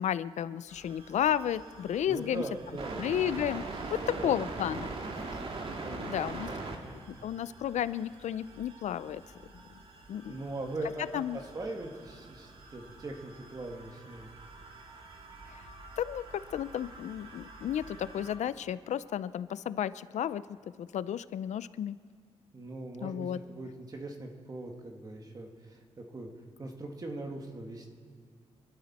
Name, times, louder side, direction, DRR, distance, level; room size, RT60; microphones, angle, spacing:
voice 1, 0.0-2.4 3.0-4.9 5.9-6.5 7.1-9.2 10.1-10.4 11.1-11.4 15.5-15.6 16.0-20.5 20.8-22.0 23.0-23.4, left 10 dB, 85° left, 16 dB, 0.5 m, -32 dB
sound 1, 0.7-18.4, right 3 dB, 55° right, 1.9 m, -44 dB
voice 2, 2.1-3.0 4.0-4.8 5.8-7.0 10.2-14.3 22.5-26.3 26.6-27.9, right 2 dB, 30° right, 2 dB, 1.6 m, -41 dB
28.0 x 12.5 x 4.2 m, 2.1 s
wide cardioid pair, 150°, 12 cm